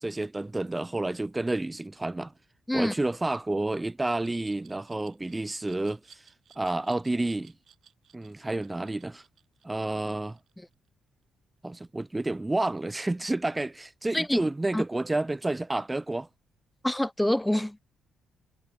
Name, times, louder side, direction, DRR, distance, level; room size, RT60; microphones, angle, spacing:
voice 1, 0.0-2.3 2.7-6.2 6.6-7.5 8.1-9.2 9.6-10.4 11.6-16.3, right 2 dB, 15° right, 2.0 m, -30 dB
Glass, 4.0-10.9, right 8 dB, 65° right, 6.1 m, -59 dB
voice 2, 14.1-14.5 14.7-14.8 16.8-17.8, left 1 dB, 5° left, 0.7 m, -26 dB
supercardioid pair, 60°, 0 cm